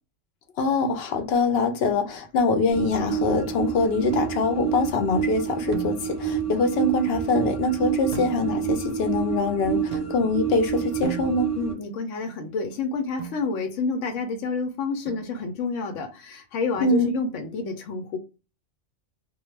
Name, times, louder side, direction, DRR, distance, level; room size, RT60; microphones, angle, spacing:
voice 1, 0.6-11.5 16.8-17.1, left 3 dB, 65° left, 0.7 m, -24 dB
sound 1, 2.7-11.7, right 8 dB, 5° left, 0.6 m, -28 dB
sound 2, 5.7-6.3 8.1-8.9 9.9-10.5 11.0-11.8 13.2-13.5 15.1-15.7, right 4 dB, 85° right, 0.9 m, -39 dB
voice 2, 11.6-18.2, left 4 dB, 85° left, 0.9 m, -29 dB
2.3 x 2.1 x 3.1 m
omnidirectional pair, 1.3 m